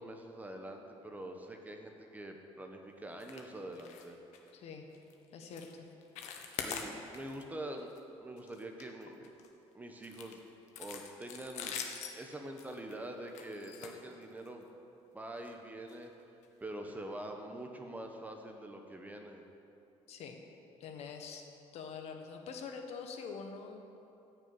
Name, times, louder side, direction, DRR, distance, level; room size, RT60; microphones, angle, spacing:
voice 1, 0.0-4.2 6.6-7.9 8.2-9.3 9.7-10.4 10.8-11.8 12.1-14.7 15.1-16.3 16.6-19.4, right 1 dB, 15° right, 4 dB, 1.1 m, -45 dB
sound 1, 3.2-3.5 3.7-4.1 4.3-4.5 4.9-5.1 5.5-5.7 6.0-7.4 7.8-8.0 8.4-9.5 10.0-14.6 15.4-15.5 15.9-16.0 16.4-16.5, left 7 dB, 85° left, 1.4 m, -44 dB
voice 2, 4.5-4.9 5.3-5.9 20.1-20.4 20.8-21.4 21.7-23.9, left 5 dB, 65° left, 4 dB, 1.5 m, -45 dB
15.0 x 6.6 x 8.8 m, 2.8 s
cardioid pair, 145°, 12 cm